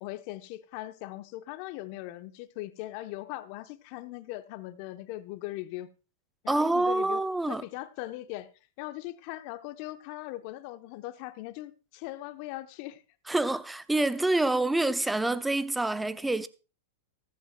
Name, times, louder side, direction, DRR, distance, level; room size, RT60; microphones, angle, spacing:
voice 1, 0.0-5.9 6.4-8.5 8.8-13.0, left 16 dB, 50° left, 0.9 m, -40 dB
voice 2, 6.5-7.6 13.3-16.5, right 2 dB, 5° right, 0.7 m, -27 dB
14.5 x 14.0 x 2.3 m
hypercardioid pair, 105°, 0 cm